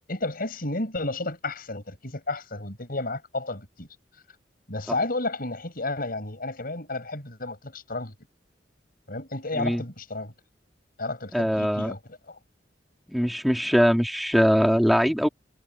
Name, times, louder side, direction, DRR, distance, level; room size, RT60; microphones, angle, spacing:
voice 1, 0.1-3.9 4.7-8.1 9.1-10.3 11.0-12.4, left 2 dB, 55° left, 6.8 m, -32 dB
voice 2, 11.3-11.9 13.1-15.3, equal, ahead, 2.8 m, -22 dB
head